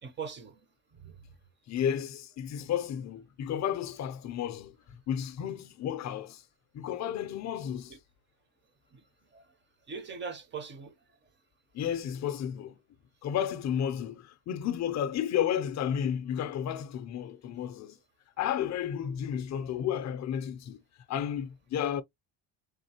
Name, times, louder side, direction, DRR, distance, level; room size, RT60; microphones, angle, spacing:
voice 1, 0.0-0.6 0.9-1.2 7.9-8.0 8.9-9.0 9.3-9.4 9.9-10.9 18.6-18.7, right 6 dB, 25° right, 0.5 m, -41 dB
voice 2, 1.7-4.7 5.1-6.4 6.7-7.9 11.7-12.7 13.2-18.0 18.4-20.8 21.1-22.0, left 9 dB, 40° left, 0.4 m, -32 dB
3.6 x 3.5 x 2.7 m
cardioid pair, 160°, 46 cm